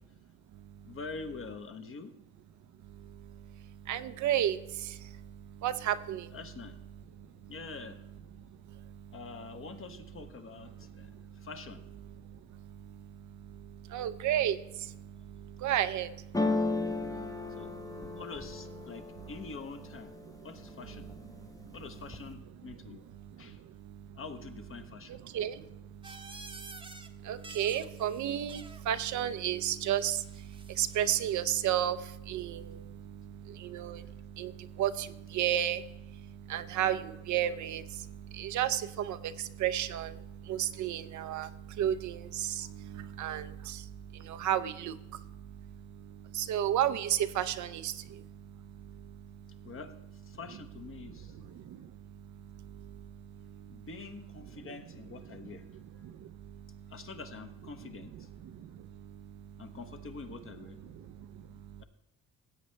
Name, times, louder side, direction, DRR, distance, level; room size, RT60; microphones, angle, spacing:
voice 1, 0.9-2.1 6.3-6.8 7.5-8.0 9.1-11.1 11.4-11.9 17.6-17.7 18.1-20.1 20.4-21.1 21.7-23.0 23.4-23.6 24.2-25.2 49.6-49.9 50.3-51.3 53.7-55.6 56.9-58.3 59.6-60.8 61.8-61.9, left 4 dB, 45° left, 8 dB, 1.1 m, -45 dB
voice 2, 3.9-4.6 5.6-6.2 13.9-14.6 15.6-16.1 25.3-25.5 27.3-30.2 30.8-32.0 32.3-32.6 33.7-34.0 34.4-34.5 34.8-34.9 35.3-35.8 36.5-37.0 37.3-37.8 38.4-38.8 39.1-39.2 39.6-40.1 40.5-41.5 41.8-42.2 43.2-43.4 44.4-44.9 46.5-47.1 47.4-47.9, right 11 dB, 70° right, 12 dB, 0.7 m, -30 dB
sound 1, 16.3-20.2 20.7-21.3 21.6-22.3, left 3 dB, 10° left, 0.8 m, -34 dB
sound 2, 26.0-27.1 27.4-28.9 29.9-31.4, right 2 dB, 15° right, 0.9 m, -50 dB
16.0 x 8.0 x 3.3 m, 0.89 s
cardioid pair, 90°, 30 cm